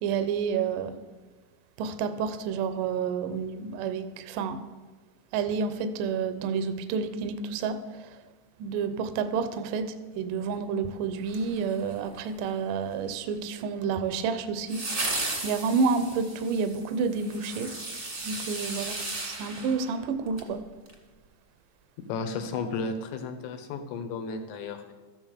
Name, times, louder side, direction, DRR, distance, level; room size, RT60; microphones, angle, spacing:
voice 1, 0.0-1.0 1.8-4.6 5.3-7.8 8.6-14.8 15.4-17.7 18.2-20.6, right 5 dB, 80° right, 10 dB, 1.9 m, -29 dB
sound 1, 11.2-12.2 14.7-20.5 20.9-21.0, right 2 dB, 40° right, 0.9 m, -35 dB
voice 2, 22.1-24.9, left 4 dB, 90° left, 6 dB, 3.5 m, -33 dB
13.5 x 9.6 x 6.5 m, 1.3 s
omnidirectional pair, 4.9 m